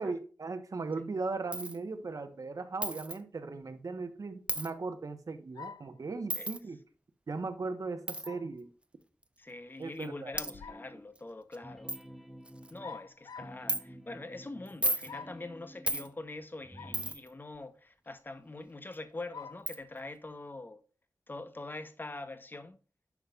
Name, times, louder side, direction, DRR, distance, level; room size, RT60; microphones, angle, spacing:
voice 1, 0.0-6.8 7.3-8.7 9.8-10.3, right 3 dB, 60° right, 1.3 m, -38 dB
Coin (dropping), 1.5-1.8 2.8-3.2 4.5-4.7 6.3-6.6 8.1-8.3 9.2-9.3 10.0-10.1 10.4-10.5 11.2-11.3 11.5-11.6 11.9-12.0 12.5-12.8 13.7-13.8 14.7-15.1 15.9-16.1 16.9-17.3 18.9-19.0 19.7-19.8, right 1 dB, 15° right, 0.7 m, -33 dB
sound 1, 5.5-6.0 8.2-8.5 10.3-10.9 12.8-13.6 15.1-15.5 16.7-17.0 17.5-17.6 19.3-19.7, left 5 dB, 85° left, 0.4 m, -46 dB
voice 2, 9.4-12.0 12.7-20.8 21.3-22.8, left 2 dB, 30° left, 1.1 m, -44 dB
sound 2, 10.3-11.2 11.6-16.2 16.6-17.1, equal, ahead, 1.0 m, -51 dB
10.5 x 6.2 x 2.5 m
wide cardioid pair, 90°, 7 cm